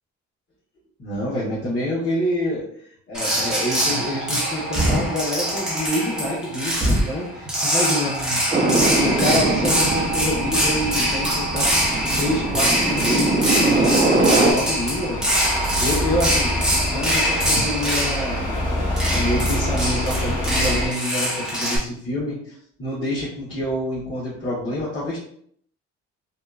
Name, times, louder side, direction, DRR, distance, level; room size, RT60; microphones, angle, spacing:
voice 1, 1.0-2.6 3.1-8.4 9.0-11.7 12.2-15.3 15.6-16.5 16.9-18.6 19.1-25.2, left 1 dB, 40° left, -8 dB, 1.1 m, -27 dB
sound 1, 3.1-21.8, equal, ahead, 0.8 m, -23 dB
sound 2, 8.5-14.5, right 2 dB, 20° right, 0.4 m, -22 dB
sound 3, 8.8-20.9, left 1 dB, 15° left, 1.3 m, -28 dB
2.8 x 2.3 x 2.3 m, 0.63 s
cardioid pair, 90°, 30 cm